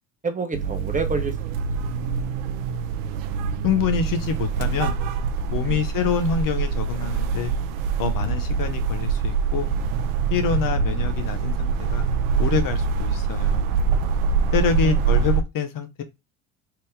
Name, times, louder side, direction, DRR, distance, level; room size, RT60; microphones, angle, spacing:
voice 1, 0.2-1.7 2.0-2.5 5.6-5.8 10.7-11.1 14.4-14.5 14.8-15.0, right 3 dB, 20° right, 0.9 m, -31 dB
sound 1, 0.5-15.4, right 5 dB, 75° right, 0.6 m, -24 dB
voice 2, 3.6-5.0 5.5-7.5 8.0-9.7 10.3-12.0 12.4-13.7 14.5-16.0, left 7 dB, 55° left, 0.9 m, -26 dB
2.8 x 2.8 x 3.5 m
supercardioid pair, 75°, 39 cm